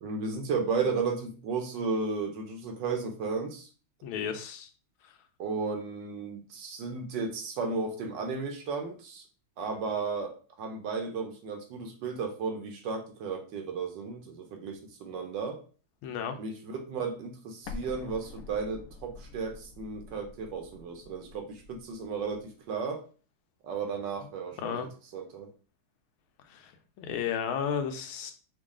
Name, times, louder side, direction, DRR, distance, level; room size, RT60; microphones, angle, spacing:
voice 1, 0.0-3.7 5.4-9.2 9.6-15.6 16.4-23.0 23.6-25.5, right 4 dB, 70° right, 4 dB, 1.3 m, -34 dB
voice 2, 4.0-4.7 5.0-5.1 16.0-16.4 24.6-24.9 26.5-26.7 27.0-28.3, left 7 dB, 90° left, 6 dB, 1.5 m, -33 dB
Explosion, 17.6-22.4, left 4 dB, 70° left, 0.9 m, -47 dB
5.2 x 2.3 x 3.6 m, 0.37 s
omnidirectional pair, 2.2 m